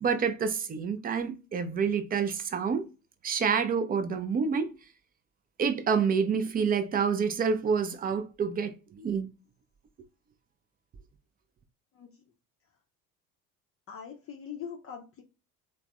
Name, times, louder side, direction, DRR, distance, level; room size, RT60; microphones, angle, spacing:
voice 1, 0.0-2.8 3.2-4.7 5.6-9.3, right 6 dB, 20° right, 0.4 m, -28 dB
voice 2, 13.9-15.2, left 7 dB, 30° left, 0.5 m, -42 dB
3.3 x 2.0 x 2.2 m
hypercardioid pair, 60°, 45 cm